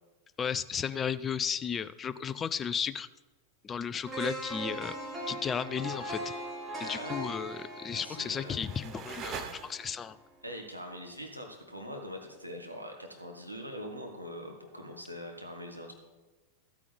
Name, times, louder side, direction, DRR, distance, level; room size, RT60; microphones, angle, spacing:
voice 1, 0.4-3.1 3.6-5.0 5.3-6.2 6.8-10.2, left 7 dB, 20° left, 16 dB, 0.4 m, -34 dB
sound 1, 4.1-10.1 10.5-10.6, right 1 dB, 15° right, 2.6 m, -40 dB
voice 2, 6.8-7.2 7.9-8.7 10.4-16.0, equal, 90° right, 2 dB, 1.3 m, -43 dB
sound 2, 7.8-10.2, right 6 dB, 35° right, 0.9 m, -44 dB
14.0 x 8.4 x 3.4 m, 1.2 s
figure-of-eight pair, 90°, 0 cm